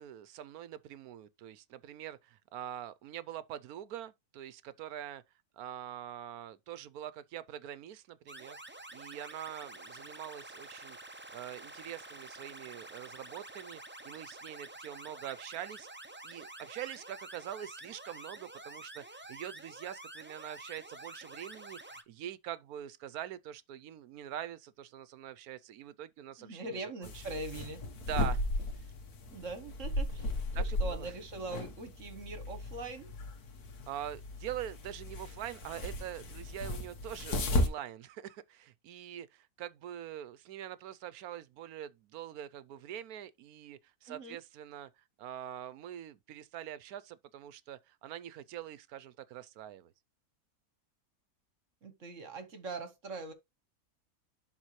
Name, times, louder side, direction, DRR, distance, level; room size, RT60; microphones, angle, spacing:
voice 1, 0.0-5.2 5.6-15.9 16.2-27.4 28.1-28.4 30.5-31.1 33.9-49.9, right 11 dB, 80° right, 1.1 m, -44 dB
sound 1, 8.3-22.0, right 2 dB, 15° right, 0.4 m, -49 dB
voice 2, 26.4-27.8 29.3-33.1 44.1-44.4 51.8-53.3, right 3 dB, 55° right, 1.5 m, -42 dB
sound 2, 27.0-37.7, left 1 dB, 85° left, 1.8 m, -35 dB
11.5 x 3.8 x 3.1 m
omnidirectional pair, 1.6 m